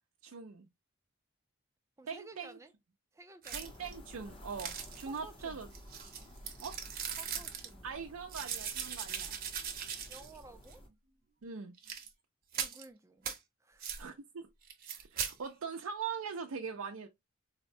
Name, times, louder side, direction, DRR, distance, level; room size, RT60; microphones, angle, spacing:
voice 1, 0.2-0.7 2.1-2.6 3.5-5.7 6.6-6.8 7.8-9.4 11.4-11.7 14.0-14.5 14.9-17.1, right 6 dB, 80° right, 0.5 m, -42 dB
voice 2, 2.0-2.7 3.1-3.7 5.1-5.7 7.2-7.9 10.1-10.8 12.5-13.3 13.6-14.0, right 3 dB, 15° right, 0.4 m, -54 dB
sound 1, 3.4-3.9 4.6-5.2 5.7-7.7 8.3-10.4 10.7-10.8 11.8-12.1 12.5-12.8 13.2-13.4 13.8-14.0 14.7-15.3, right 7 dB, 45° right, 0.8 m, -40 dB
sound 2, 3.6-10.9, equal, 25° left, 0.8 m, -53 dB
4.1 x 2.1 x 2.6 m
head